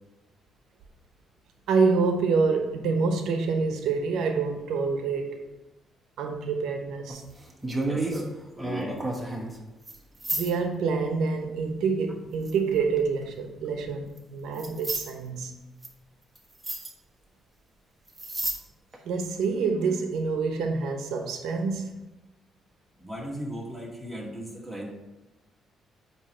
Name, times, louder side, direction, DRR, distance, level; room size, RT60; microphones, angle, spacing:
voice 1, 1.7-5.5 6.2-7.2 10.3-15.6 19.0-21.9, right 4 dB, 80° right, 5 dB, 0.9 m, -27 dB
sound 1, 7.1-8.2 8.6-9.6 9.9-10.0 10.2-10.5 12.5-13.0 14.2-14.3 14.6-15.1 15.8-15.9 16.4-16.5 16.6-16.9 18.1-18.6 18.9-19.0, right 2 dB, 15° right, 1.2 m, -31 dB
voice 2, 7.8-9.0 23.0-24.9, right 1 dB, ahead, -4 dB, 1.9 m, -37 dB
8.6 x 3.1 x 4.4 m, 1.0 s
cardioid pair, 90°, 0 cm